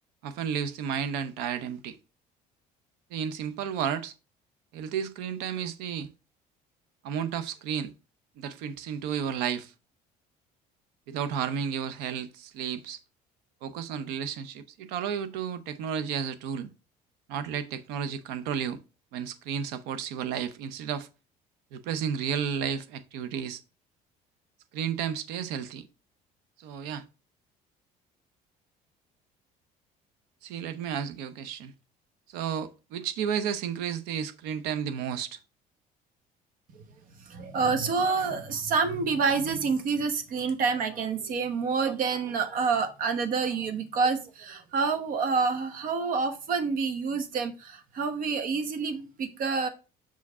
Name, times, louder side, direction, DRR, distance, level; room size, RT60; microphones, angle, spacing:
voice 1, 0.2-2.0 3.1-4.1 4.7-6.1 7.0-7.9 8.4-9.7 11.1-13.0 13.6-16.7 17.3-18.8 19.1-21.1 21.7-23.6 24.7-25.9 26.6-27.1 30.4-31.7 32.3-35.4, right 8 dB, 85° right, 0.7 m, -32 dB
voice 2, 37.2-49.7, right 5 dB, 60° right, 1.2 m, -28 dB
5.8 x 4.8 x 3.6 m
cardioid pair, 105°, 16 cm